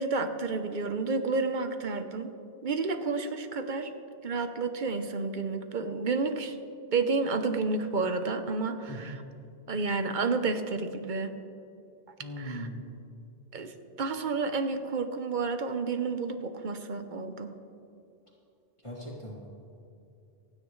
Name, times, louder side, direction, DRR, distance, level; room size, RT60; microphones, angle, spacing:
voice 1, 0.0-2.3 2.6-3.9 4.2-6.6 6.9-9.2 9.7-11.3 12.4-12.7 13.5-17.5, right 4 dB, 50° right, 8 dB, 1.0 m, -30 dB
voice 2, 12.2-12.8 18.8-19.5, equal, 30° left, -5 dB, 2.6 m, -39 dB
28.0 x 9.9 x 3.2 m, 2.6 s
omnidirectional pair, 1.1 m